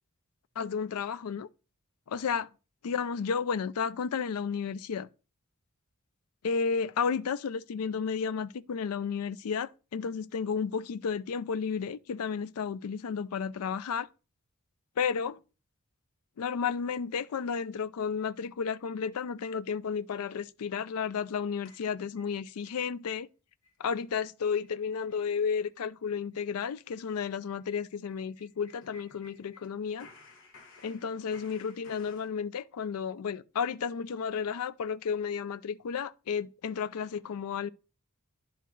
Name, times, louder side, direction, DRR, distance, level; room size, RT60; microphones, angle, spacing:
voice 1, 0.6-1.5 2.1-2.5 2.8-5.1 6.4-14.1 15.0-15.4 16.4-23.3 23.8-30.1 30.8-37.7, left 6 dB, 80° left, 0.4 m, -32 dB
sound 1, 21.7-22.8 23.2-23.3 23.6-23.9 24.1-24.2 24.6-24.8 25.1-25.3 25.6-25.7 26.0-29.7 30.0-32.3, left 3 dB, 60° left, 1.8 m, -57 dB
10.0 x 4.6 x 3.9 m
head